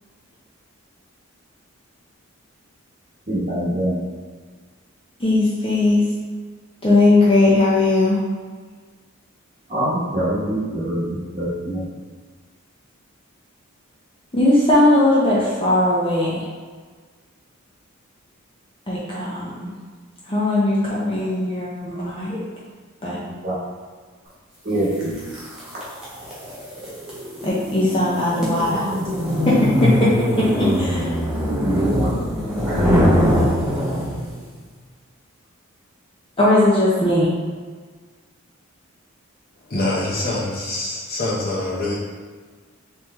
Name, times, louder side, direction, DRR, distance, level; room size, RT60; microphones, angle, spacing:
voice 1, 3.3-4.0 9.7-11.8 22.3-22.4 23.4-23.5 24.6-25.2 31.4-32.2 32.7-32.8, right 1 dB, 35° right, -8 dB, 1.2 m, -24 dB
voice 2, 5.2-6.1 6.8-8.2 14.3-16.4 18.9-19.7 20.3-22.3 23.0-23.2 27.4-28.9 29.5-30.1 30.6-31.1 36.4-37.3, left 2 dB, 25° left, -7 dB, 0.5 m, -18 dB
sound 1, 25.0-34.4, equal, 5° right, 0.8 m, -22 dB
voice 3, 39.7-41.9, left 2 dB, 45° left, -6 dB, 0.9 m, -24 dB
3.5 x 3.0 x 3.0 m, 1.5 s
head